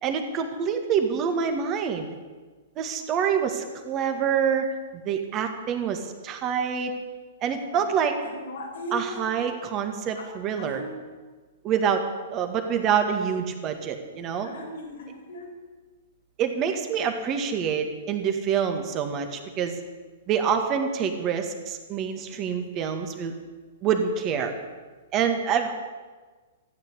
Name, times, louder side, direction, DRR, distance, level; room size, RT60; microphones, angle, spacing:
voice 1, 0.0-2.1 2.8-4.7 5.1-6.9 7.4-8.2 8.9-10.8 11.6-12.0 12.3-14.5 16.4-19.8 20.3-23.3 23.8-24.6 25.1-25.8, right 7 dB, 35° right, 6 dB, 1.9 m, -26 dB
voice 2, 8.4-9.2 10.2-10.3 10.6-10.9 14.4-15.5, equal, 65° left, 2 dB, 2.8 m, -37 dB
14.0 x 9.1 x 8.2 m, 1.4 s
hypercardioid pair, 115°, 0 cm